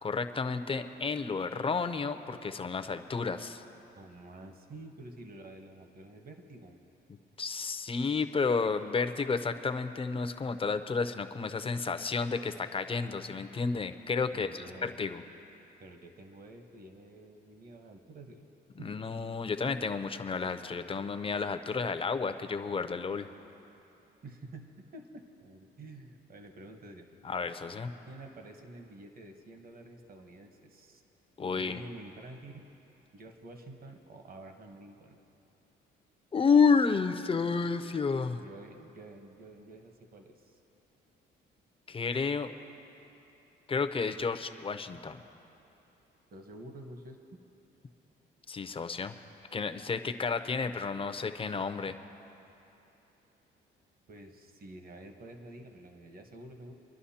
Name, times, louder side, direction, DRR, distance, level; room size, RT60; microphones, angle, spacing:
voice 1, 0.0-3.6 7.4-15.2 18.8-23.3 27.2-27.9 31.4-31.8 36.3-38.4 41.9-42.5 43.7-45.2 48.5-49.1 49.5-51.9, left 5 dB, 25° left, 8 dB, 0.6 m, -31 dB
voice 2, 4.0-6.8 14.3-15.0 15.8-18.5 18.8-19.2 19.5-19.6 24.2-27.1 28.0-31.0 31.6-32.7 33.1-35.2 38.4-40.6 46.3-47.2 54.1-56.8, right 2 dB, 50° right, 4 dB, 1.2 m, -49 dB
25.5 x 11.0 x 2.9 m, 3.0 s
cardioid pair, 90°, 20 cm